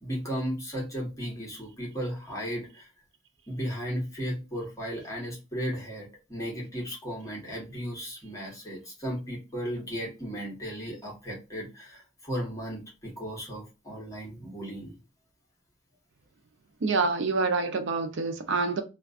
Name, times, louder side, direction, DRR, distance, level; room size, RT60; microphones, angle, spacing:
voice 1, 0.0-2.9 3.5-15.0, equal, 15° left, 1.0 m, -35 dB
voice 2, 16.8-18.8, right 4 dB, 60° right, 0.5 m, -27 dB
2.3 x 2.3 x 2.4 m
head